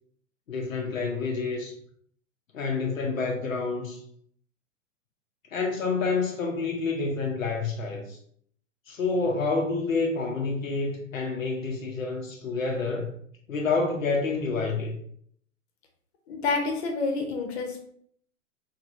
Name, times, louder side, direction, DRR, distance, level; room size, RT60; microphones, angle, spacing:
voice 1, 0.5-1.7 2.5-4.0 5.5-8.2 8.9-13.1 13.5-15.0, left 4 dB, 85° left, 0.6 m, -28 dB
voice 2, 16.3-17.8, left 4 dB, 55° left, 0.8 m, -28 dB
3.2 x 2.2 x 2.5 m
figure-of-eight pair, 100°, 39 cm